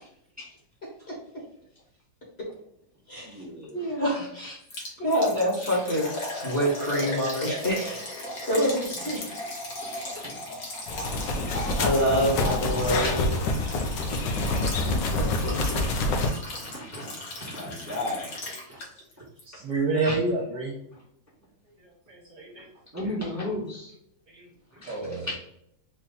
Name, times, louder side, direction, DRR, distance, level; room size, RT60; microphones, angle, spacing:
voice 1, 3.2-3.8 10.2-10.3 11.3-12.5 12.7-13.2 15.2-15.7 16.0-18.3 20.0-20.2 22.9-23.9 24.8-25.0 25.2-25.3, left 1 dB, 10° right, -5 dB, 1.1 m, -36 dB
voice 2, 3.7-4.6 5.0-8.0 8.5-9.3 11.7-13.4 15.1-16.0, equal, 35° left, -4 dB, 1.6 m, -27 dB
Liquid, 4.7-19.1 19.4-19.5 20.0-20.1, left 1 dB, 55° left, 1.5 m, -37 dB
sound 1, 10.9-16.3, left 2 dB, 75° left, 1.4 m, -27 dB
voice 3, 19.4-20.8 21.8-22.6 24.3-24.4 24.8-25.3, right 3 dB, 60° right, -5 dB, 1.6 m, -29 dB
4.1 x 3.0 x 3.9 m, 0.75 s
omnidirectional pair, 2.0 m